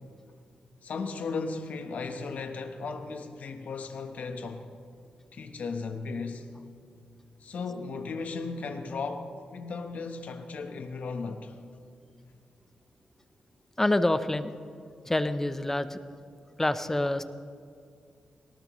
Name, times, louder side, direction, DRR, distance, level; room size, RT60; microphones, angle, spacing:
voice 1, 0.8-4.7 5.3-6.5 7.4-11.5, left 4 dB, 70° left, 1.2 m, -36 dB
voice 2, 13.8-14.5 15.0-16.0 16.6-17.2, left 1 dB, 15° left, 0.8 m, -26 dB
20.5 x 18.0 x 3.2 m
cardioid pair, 85°, 3 cm